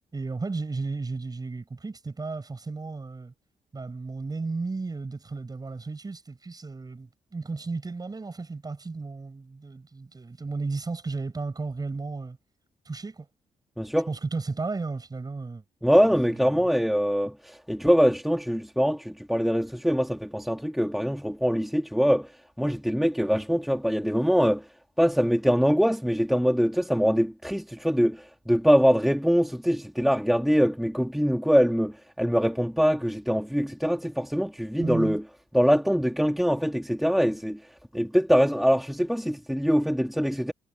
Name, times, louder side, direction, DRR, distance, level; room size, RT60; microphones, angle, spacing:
voice 1, 0.1-3.3 3.7-12.4 12.8-13.3 14.1-15.6 16.3-16.7 34.8-35.2, right 3 dB, 25° right, 6.6 m, -34 dB
voice 2, 13.8-14.1 15.8-22.3 22.6-24.6 25.0-35.2 35.5-37.6 37.9-40.5, equal, ahead, 3.0 m, -23 dB
cardioid pair, 100°, 14 cm